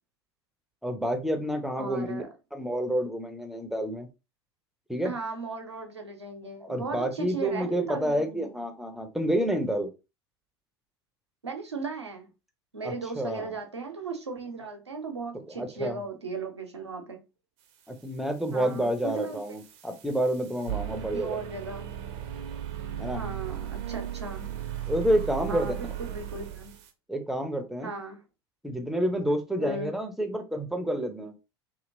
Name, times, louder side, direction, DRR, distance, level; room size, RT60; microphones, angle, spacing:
voice 1, 0.8-2.2 2.5-4.1 4.9-5.1 6.6-9.9 12.8-13.5 15.3-16.0 17.9-21.4 23.0-23.2 24.9-25.7 27.1-27.9 28.6-31.3, equal, ahead, 0.6 m, -29 dB
voice 2, 1.8-2.3 5.0-8.5 11.4-12.3 12.7-17.2 18.5-19.4 21.1-21.9 23.1-24.5 25.5-26.7 27.8-28.2 29.6-29.9, right 4 dB, 85° right, 0.8 m, -36 dB
sound 1, 18.3-26.9, right 11 dB, 50° right, 0.7 m, -37 dB
2.9 x 2.8 x 2.6 m
figure-of-eight pair, 80°, 14 cm